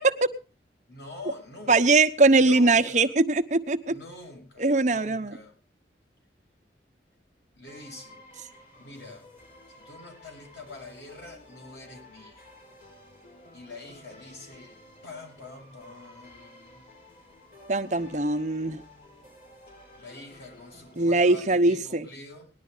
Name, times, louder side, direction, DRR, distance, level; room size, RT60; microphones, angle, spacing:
voice 1, 0.9-2.1 2.4-3.2 3.9-5.6 7.5-8.2 8.8-9.3 9.7-12.5 13.5-16.8 20.0-22.5, left 2 dB, 80° left, 2 dB, 6.7 m, -45 dB
voice 2, 1.7-3.9 4.6-5.3 17.7-18.8 21.0-22.1, right 3 dB, 40° right, 7 dB, 0.9 m, -21 dB
sound 1, 7.7-21.4, left 1 dB, 45° left, 6.2 m, -52 dB
19.5 x 11.5 x 3.9 m, 0.36 s
head